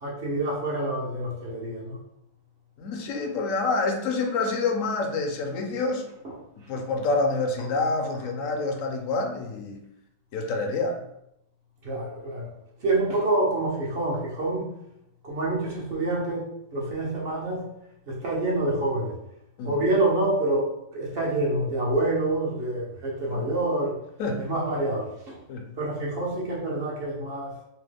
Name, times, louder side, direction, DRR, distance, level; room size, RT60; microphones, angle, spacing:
voice 1, 0.0-2.0 6.2-6.3 11.8-12.5 12.8-14.7 15.2-17.6 18.1-19.2 19.6-24.0 24.4-25.4 25.8-27.6, right 2 dB, 55° right, -4 dB, 0.9 m, -27 dB
voice 2, 2.8-6.0 6.7-9.8 10.3-11.0 19.6-19.7 23.2-23.4 24.2-24.4 25.5-25.7, left 3 dB, 80° left, 3 dB, 1.0 m, -27 dB
2.9 x 2.1 x 3.3 m, 0.79 s
omnidirectional pair, 1.4 m